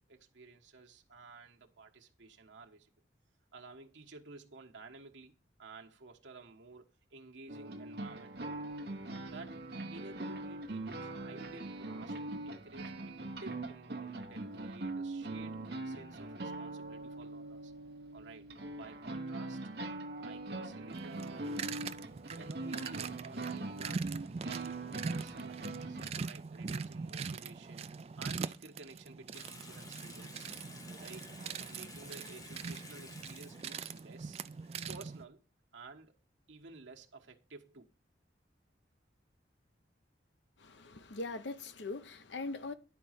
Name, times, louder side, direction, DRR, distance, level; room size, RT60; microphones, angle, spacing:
voice 1, 0.1-2.9 3.5-5.3 5.6-8.3 9.3-9.6 9.9-17.7 18.1-18.5 18.8-19.6 20.2-21.5 22.4-27.9 28.2-30.5 31.0-31.2 31.6-34.4 34.9-35.4 35.7-36.1 36.5-37.9, right 3 dB, 85° right, 1.2 m, -53 dB
sound 1, 7.5-26.1, right 2 dB, 55° right, 1.0 m, -42 dB
sound 2, 20.9-35.2, right 5 dB, 35° right, 0.3 m, -42 dB
Water tap faucet / Sink (filling or washing) / Bathtub (filling or washing), 29.3-35.0, left 2 dB, 20° left, 0.9 m, -53 dB
voice 2, 40.6-42.7, left 3 dB, 75° left, 0.8 m, -41 dB
10.5 x 4.2 x 6.4 m
head